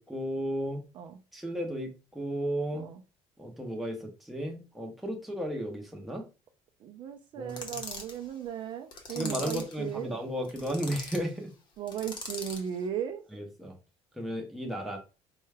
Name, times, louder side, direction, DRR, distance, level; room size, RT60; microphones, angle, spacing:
voice 1, 0.0-0.8 1.3-2.9 3.4-6.2 7.4-7.8 9.1-11.5 13.3-13.7 14.2-15.0, equal, ahead, 1 dB, 0.6 m, -34 dB
voice 2, 6.8-10.1 11.8-13.2, right 9 dB, 40° right, 6 dB, 0.4 m, -36 dB
sound 1, 7.5-8.2 8.9-9.8 10.4-11.2 11.9-12.7, left 3 dB, 40° left, 0.8 m, -40 dB
4.5 x 2.2 x 3.2 m, 0.31 s
cardioid pair, 175°, 12 cm